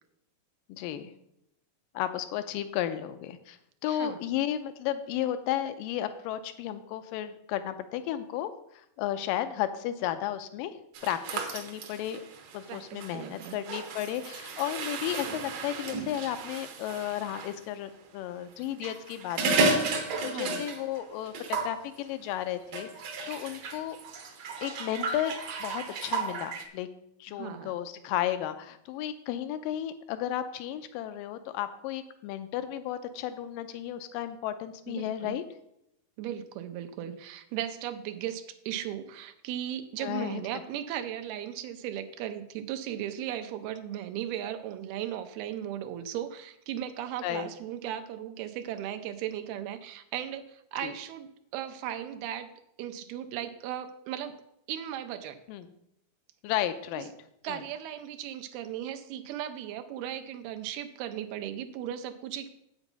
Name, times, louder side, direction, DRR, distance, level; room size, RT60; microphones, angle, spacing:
voice 1, 0.7-1.1 2.0-3.6 3.8-10.7 11.0-12.2 12.5-24.0 24.6-25.3 25.6-26.9 27.2-35.4 40.0-40.4 47.2-47.5 50.8-50.9 55.5-55.7 56.4-57.1 57.5-57.6, left 11 dB, 85° left, 10 dB, 1.9 m, -33 dB
voice 2, 3.9-4.2 12.7-13.6 20.3-20.6 27.4-27.8 34.9-35.4 36.2-51.3 51.5-54.4 54.7-55.4 57.0-57.1 57.4-62.5, right 11 dB, 90° right, 8 dB, 2.6 m, -37 dB
sound 1, 10.9-17.5 18.6-21.0 21.3-21.8 22.7-26.6, right 3 dB, 70° right, 1.5 m, -33 dB
8.1 x 8.1 x 5.3 m, 0.79 s
omnidirectional pair, 4.5 m